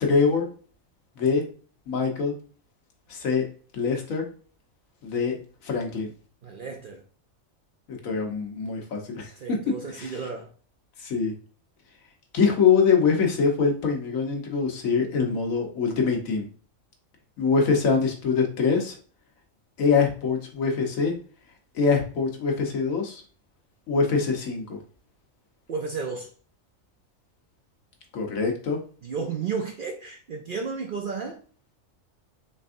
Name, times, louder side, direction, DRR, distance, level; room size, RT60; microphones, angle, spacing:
voice 1, 0.0-0.5 1.2-1.5 1.9-2.4 3.1-3.4 3.7-4.3 5.0-5.4 5.6-6.1 8.0-9.3 9.7-10.2 11.0-11.3 12.3-16.5 17.4-19.0 19.8-21.1 21.7-23.2 23.9-24.8 28.1-28.8, left 5 dB, 85° left, 1.4 m, -24 dB
voice 2, 6.4-7.0 9.4-10.5 25.7-26.3 29.0-31.4, right 5 dB, 60° right, 0.5 m, -32 dB
4.6 x 3.4 x 2.5 m
omnidirectional pair, 1.4 m